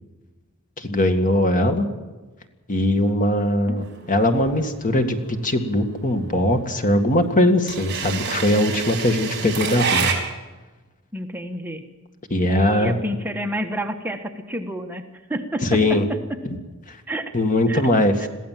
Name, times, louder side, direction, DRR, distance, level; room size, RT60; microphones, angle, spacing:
voice 1, 0.8-1.9 2.7-10.1 12.3-13.0 15.6-16.0 16.5-16.6 16.9-17.0 17.3-18.2, left 1 dB, 40° left, 6 dB, 2.0 m, -20 dB
sound 1, 3.8-10.1, right 6 dB, 55° right, 4.9 m, -27 dB
voice 2, 11.1-11.8 12.4-15.0 15.3-16.2 17.1-17.3 17.7-17.8 18.2-18.3, equal, 10° right, 4 dB, 1.3 m, -29 dB
22.5 x 15.5 x 7.6 m, 1.2 s
head